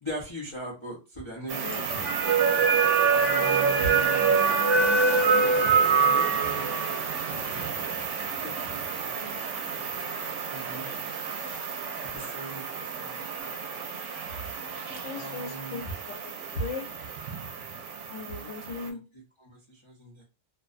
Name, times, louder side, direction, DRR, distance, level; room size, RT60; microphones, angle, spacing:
voice 1, 0.0-2.0 3.1-4.4 6.0-7.6 8.4-8.8 9.2-9.3 9.7-9.9 10.5-10.9 12.1-12.6 13.0-13.5 15.1-15.8 18.3-18.5 18.8-19.0 19.4-20.2, right 1 dB, 30° left, -5 dB, 0.6 m, -41 dB
sound 1, 1.5-18.9, right 5 dB, 80° right, 0.9 m, -27 dB
voice 2, 1.6-2.4 3.3-4.0 5.4-5.9 14.9-16.9 18.1-19.0, left 1 dB, 85° left, 4 dB, 1.0 m, -37 dB
2.6 x 2.0 x 2.4 m, 0.29 s
omnidirectional pair, 1.2 m